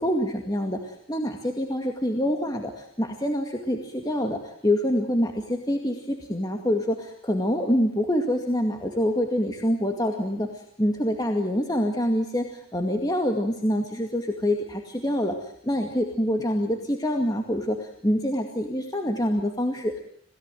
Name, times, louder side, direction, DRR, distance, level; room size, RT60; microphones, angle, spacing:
voice 1, 0.0-20.0, equal, 15° left, 3 dB, 2.2 m, -26 dB
28.5 x 17.5 x 9.2 m, 0.65 s
head